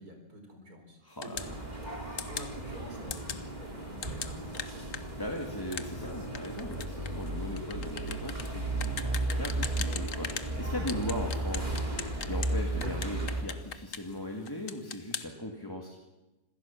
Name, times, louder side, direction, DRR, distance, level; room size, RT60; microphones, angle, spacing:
voice 1, 0.0-1.4 2.2-5.0, equal, 75° right, 4 dB, 5.0 m, -47 dB
voice 2, 1.0-1.4 5.2-11.8 12.2-16.0, left 1 dB, 15° left, 0 dB, 2.0 m, -38 dB
sound 1, 1.2-1.5 2.2-2.5 3.1-3.4 4.0-10.5 10.9-12.5 12.8-14.2 14.5-15.3, left 7 dB, 60° left, 1.4 m, -39 dB
sound 2, 1.4-13.4, right 2 dB, 30° right, 3.1 m, -35 dB
26.0 x 16.5 x 7.1 m, 1.1 s
omnidirectional pair, 1.6 m